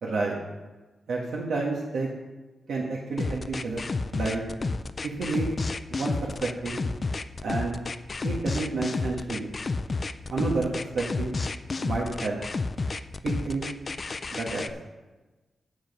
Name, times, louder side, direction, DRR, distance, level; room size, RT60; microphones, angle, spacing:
voice 1, 0.0-0.3 1.1-2.1 2.7-3.8 4.1-4.4 5.0-5.5 5.9-6.8 7.4-7.8 8.2-9.5 10.3-11.4 11.8-12.4 13.2-13.7 14.3-14.6, right 3 dB, 80° right, -3 dB, 1.4 m, -30 dB
sound 1, 3.2-14.7, left 3 dB, 30° left, 0.4 m, -31 dB
8.8 x 8.0 x 5.3 m, 1.2 s
wide cardioid pair, 165°, 0 cm